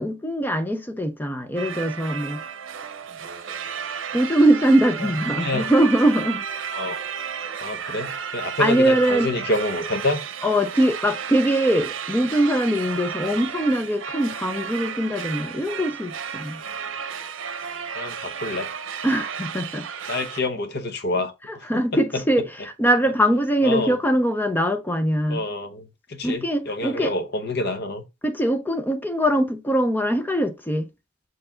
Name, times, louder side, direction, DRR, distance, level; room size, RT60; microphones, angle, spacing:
voice 1, 0.0-2.4 4.1-6.4 7.8-8.1 8.6-9.3 10.4-16.6 19.0-19.9 21.5-25.4 26.2-27.1 28.2-30.9, right 1 dB, 10° left, 0.6 m, -22 dB
sound 1, 1.5-20.4, right 7 dB, 85° right, 0.7 m, -33 dB
voice 2, 5.3-5.7 6.7-7.0 7.6-10.2 17.9-18.7 20.1-21.8 23.6-23.9 25.3-28.0, left 2 dB, 55° left, 1.1 m, -27 dB
6.6 x 4.6 x 3.7 m
head